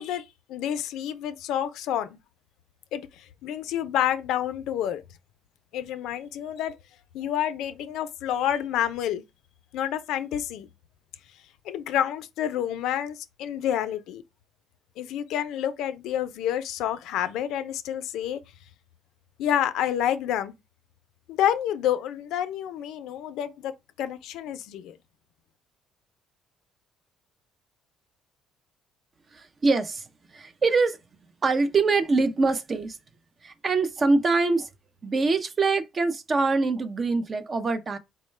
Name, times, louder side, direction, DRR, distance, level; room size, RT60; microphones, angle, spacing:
voice 1, 0.0-2.2 2.9-5.0 5.7-6.7 7.1-9.2 9.7-10.7 11.6-14.2 15.0-18.4 19.4-20.5 21.3-25.0, left 10 dB, 75° left, 0.4 m, -29 dB
voice 2, 29.3-30.1 30.3-31.0 31.4-33.0 33.4-34.7 35.0-38.0, right 3 dB, 30° right, 0.4 m, -24 dB
4.4 x 2.1 x 3.2 m
cardioid pair, 125°, 0 cm